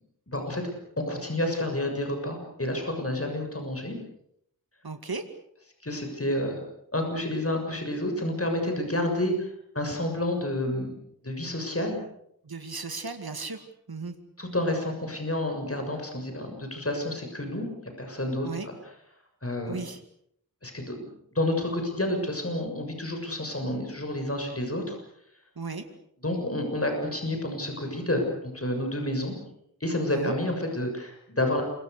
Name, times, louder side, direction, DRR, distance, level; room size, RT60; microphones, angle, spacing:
voice 1, 0.3-4.0 5.8-6.6 6.9-10.9 11.2-12.0 14.4-17.7 18.0-18.5 19.4-19.8 20.6-25.0 26.2-29.4 29.8-31.6, left 1 dB, 40° left, 4 dB, 6.9 m, -29 dB
voice 2, 4.8-5.3 12.4-14.2 18.4-18.7 19.6-20.0 25.6-25.8 30.1-30.4, right 4 dB, 85° right, 7 dB, 2.2 m, -36 dB
28.5 x 24.5 x 6.8 m, 0.73 s
wide cardioid pair, 50°, 36 cm